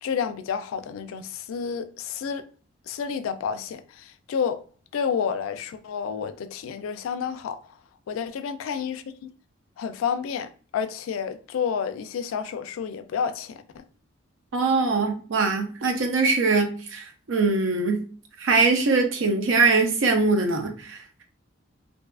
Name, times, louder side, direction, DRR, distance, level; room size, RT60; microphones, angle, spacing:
voice 1, 0.0-2.4 2.9-4.6 4.9-7.6 8.1-9.3 9.8-13.8, left 7 dB, 85° left, 0.3 m, -30 dB
voice 2, 14.5-18.0 18.4-21.2, right 4 dB, 75° right, 0.5 m, -22 dB
2.6 x 2.3 x 2.2 m
head